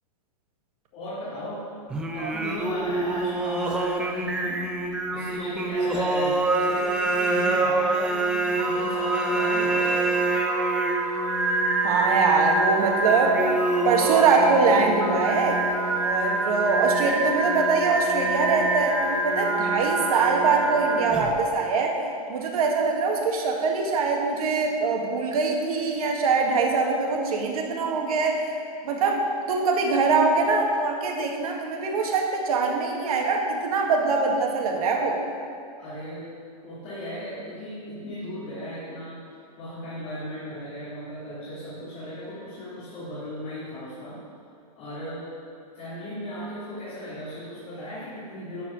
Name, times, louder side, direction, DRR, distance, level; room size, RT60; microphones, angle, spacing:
voice 1, 0.9-1.7 2.1-10.1 35.8-36.3 36.6-44.2 44.8-45.3 45.7-48.6, equal, 35° left, -10 dB, 2.9 m, -36 dB
Singing, 1.9-21.5, right 2 dB, 5° right, 0.3 m, -26 dB
Wind instrument woodwind instrument, 8.6-21.2, right 1 dB, 15° left, 1.6 m, -32 dB
voice 2, 11.8-13.4 13.8-15.6 16.0-22.0 22.3-28.4 28.8-35.2, right 4 dB, 65° right, 1 dB, 1.9 m, -23 dB
12.0 x 4.8 x 7.0 m, 2.4 s
hypercardioid pair, 160°, 20 cm